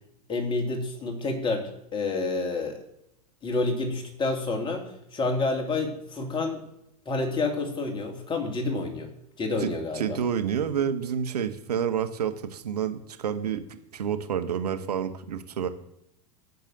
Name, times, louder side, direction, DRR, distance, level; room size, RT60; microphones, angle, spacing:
voice 1, 0.3-2.8 3.4-6.6 7.0-9.1 9.4-10.2, left 3 dB, 25° left, 2 dB, 2.9 m, -29 dB
voice 2, 9.9-15.7, right 8 dB, 80° right, 9 dB, 1.2 m, -29 dB
10.5 x 6.8 x 8.0 m, 0.78 s
hypercardioid pair, 100°, 20 cm